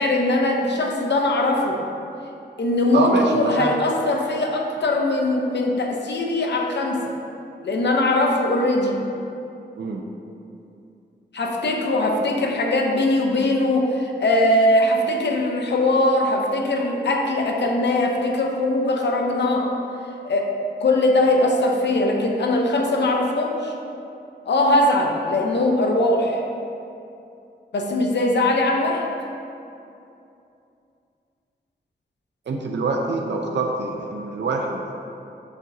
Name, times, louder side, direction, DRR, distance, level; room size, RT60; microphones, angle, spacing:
voice 1, 0.0-1.8 2.6-7.1 7.6-9.0 11.3-19.7 20.2-20.5 20.8-23.7 24.5-26.4 27.7-29.0, left 1 dB, 75° left, 1 dB, 0.7 m, -21 dB
voice 2, 2.9-3.8 9.8-10.0 32.5-35.0, right 3 dB, 80° right, 1 dB, 0.5 m, -25 dB
7.0 x 5.9 x 2.7 m, 2.7 s
wide cardioid pair, 135°, 18 cm